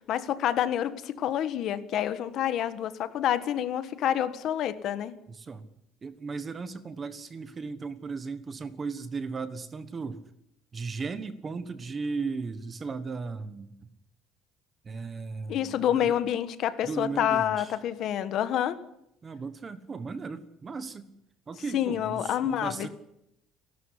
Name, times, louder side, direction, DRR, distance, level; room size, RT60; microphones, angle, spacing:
voice 1, 0.0-5.1 15.5-18.8 21.7-22.9, left 10 dB, 45° left, 13 dB, 1.5 m, -28 dB
voice 2, 5.3-5.6 6.0-10.2 10.7-13.7 14.8-16.2 16.8-17.7 19.2-21.1 21.5-22.9, right 4 dB, 20° right, 14 dB, 1.3 m, -36 dB
29.5 x 13.0 x 9.9 m, 0.82 s
cardioid pair, 175°, 0 cm